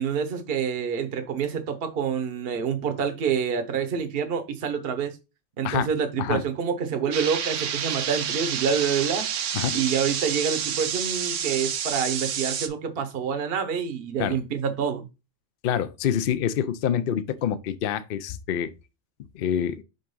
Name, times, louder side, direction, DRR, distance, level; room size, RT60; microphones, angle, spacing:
voice 1, 0.0-5.2 5.6-9.3 9.7-15.1, right 7 dB, 55° right, 1.0 m, -27 dB
sound 1, 7.1-12.7, right 8 dB, 85° right, 1.1 m, -29 dB
voice 2, 15.6-18.7 19.3-19.8, left 9 dB, 55° left, 0.7 m, -26 dB
5.4 x 3.6 x 5.3 m
omnidirectional pair, 1.3 m